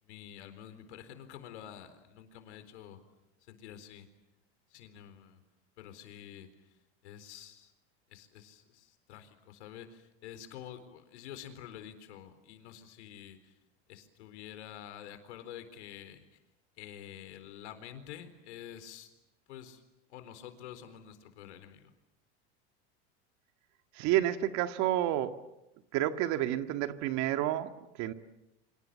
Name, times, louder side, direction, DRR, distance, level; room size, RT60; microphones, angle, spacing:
voice 1, 0.0-3.0 3.4-4.1 4.7-5.4 5.8-6.5 7.0-7.7 8.1-13.5 13.9-16.3 16.8-19.1 19.5-19.8 20.1-21.9, left 10 dB, 80° left, 10 dB, 4.1 m, -48 dB
voice 2, 23.9-25.4 25.9-28.1, right 13 dB, 55° right, 9 dB, 1.9 m, -30 dB
29.5 x 26.0 x 7.7 m, 0.93 s
supercardioid pair, 110°, 34 cm